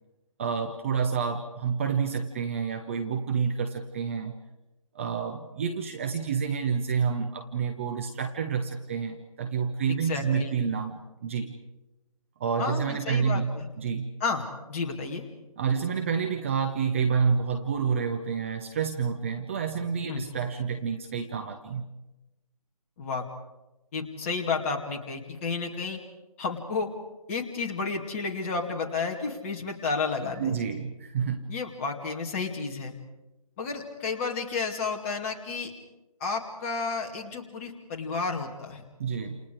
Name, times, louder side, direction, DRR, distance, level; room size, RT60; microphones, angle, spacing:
voice 1, 0.4-4.4 4.9-11.6 12.4-14.1 15.6-21.8 30.4-31.5 39.0-39.4, right 6 dB, 20° right, 6 dB, 0.8 m, -29 dB
voice 2, 9.9-10.6 12.6-13.7 14.2-14.4 14.7-15.2 20.1-20.2 23.0-23.2 23.9-26.0 26.4-26.9 27.3-30.6 31.5-32.9 33.6-35.7 36.2-38.8, left 4 dB, 20° left, 1 dB, 2.4 m, -31 dB
29.5 x 28.5 x 4.8 m, 1.0 s
figure-of-eight pair, 155°, 20 cm